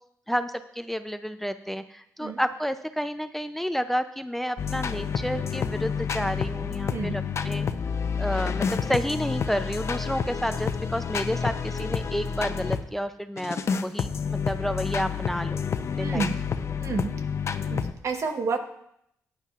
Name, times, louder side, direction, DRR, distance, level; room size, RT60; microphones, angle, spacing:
voice 1, 0.3-7.7 8.2-15.7 16.0-16.3, equal, 5° left, 10 dB, 0.4 m, -30 dB
sound 1, 4.6-12.9 13.4-17.9, left 6 dB, 50° left, 0.6 m, -29 dB
voice 2, 16.0-16.4 16.8-17.1 17.7-18.6, right 4 dB, 60° right, 5 dB, 1.2 m, -30 dB
15.5 x 10.0 x 2.4 m, 0.74 s
cardioid pair, 90°, 6 cm